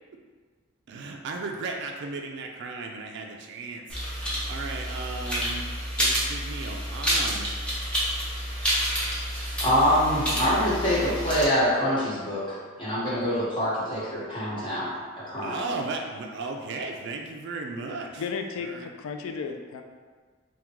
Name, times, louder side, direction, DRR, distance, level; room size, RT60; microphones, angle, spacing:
voice 1, 0.9-3.8 4.1-5.7 6.0-7.5 15.4-18.2 18.6-18.9, right 3 dB, 60° right, 2 dB, 0.4 m, -35 dB
sound 1, 3.9-11.5, equal, 5° left, 0.7 m, -29 dB
voice 2, 9.6-14.9 15.2-15.6, equal, 25° left, -10 dB, 1.2 m, -25 dB
voice 3, 18.2-19.8, left 5 dB, 75° left, 5 dB, 0.3 m, -34 dB
3.5 x 2.2 x 2.9 m, 1.5 s
head